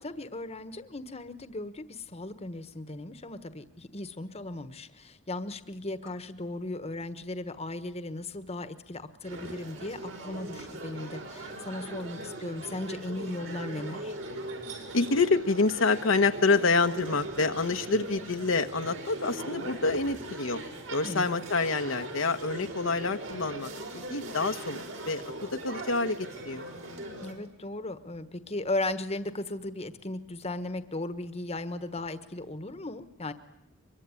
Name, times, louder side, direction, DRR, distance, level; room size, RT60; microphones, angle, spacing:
voice 1, 0.0-14.1 21.0-21.4 27.2-33.3, left 2 dB, 30° left, 12 dB, 1.3 m, -36 dB
sound 1, 9.2-27.3, right 1 dB, 70° right, 5.5 m, -40 dB
voice 2, 14.9-20.6 20.9-25.2 25.5-26.7, left 3 dB, 75° left, 7 dB, 1.2 m, -27 dB
24.0 x 22.5 x 9.8 m, 0.76 s
head